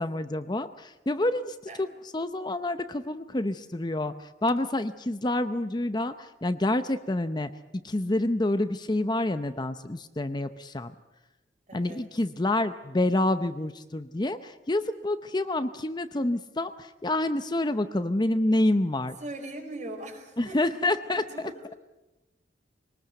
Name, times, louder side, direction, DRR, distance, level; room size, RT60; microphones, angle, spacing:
voice 1, 0.0-7.5 7.8-10.9 11.7-19.2 20.4-21.5, left 1 dB, 25° left, 10 dB, 0.7 m, -28 dB
voice 2, 11.7-12.0 19.2-20.6 21.1-21.5, right 2 dB, 40° right, 4 dB, 4.9 m, -40 dB
22.5 x 19.5 x 8.0 m, 1.0 s
head